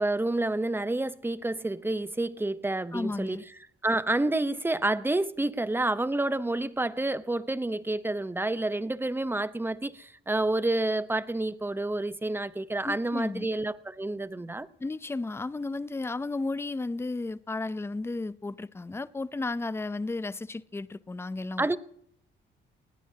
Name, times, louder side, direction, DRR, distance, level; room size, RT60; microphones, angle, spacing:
voice 1, 0.0-3.4 3.8-14.7 21.6-21.8, right 2 dB, 10° right, 0.9 m, -29 dB
voice 2, 2.9-3.4 12.8-13.5 14.8-21.8, left 3 dB, 10° left, 0.6 m, -33 dB
20.0 x 17.5 x 2.9 m
cardioid pair, 90°, 20 cm